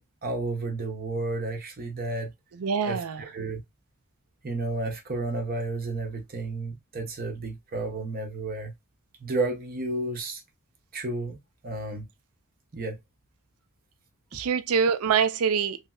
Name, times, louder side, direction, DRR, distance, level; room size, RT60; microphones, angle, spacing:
voice 1, 0.0-2.3 2.8-3.6 4.4-8.7 9.2-10.4 10.9-11.4 11.6-12.1 12.7-13.0, right 2 dB, 40° right, 0.7 m, -32 dB
voice 2, 2.5-3.2 14.3-15.8, right 6 dB, 75° right, 0.5 m, -25 dB
3.2 x 3.0 x 2.3 m
head